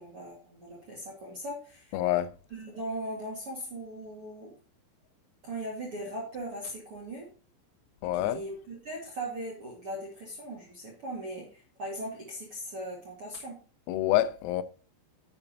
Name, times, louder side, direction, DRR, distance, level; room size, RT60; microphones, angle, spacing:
voice 1, 0.0-2.0 2.5-4.5 5.4-7.3 8.2-13.6, right 1 dB, 50° right, 1.6 m, -39 dB
voice 2, 1.9-2.3 8.0-8.4 13.9-14.6, left 13 dB, 85° left, 3.4 m, -27 dB
10.5 x 8.2 x 2.8 m
omnidirectional pair, 6.0 m